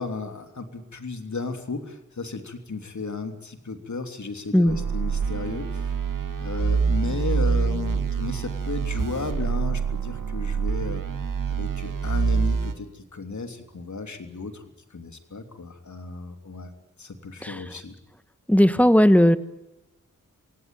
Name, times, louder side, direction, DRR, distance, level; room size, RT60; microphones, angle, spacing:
voice 1, 0.0-5.9 6.4-11.0 11.5-14.6 14.9-16.7 17.0-18.0, left 3 dB, 60° left, 7 dB, 3.2 m, -34 dB
sound 1, 4.7-12.7, right 5 dB, 75° right, 2.4 m, -26 dB
voice 2, 18.5-19.4, equal, 5° left, 13 dB, 1.6 m, -17 dB
26.0 x 17.5 x 9.2 m, 0.97 s
cardioid pair, 55°, 32 cm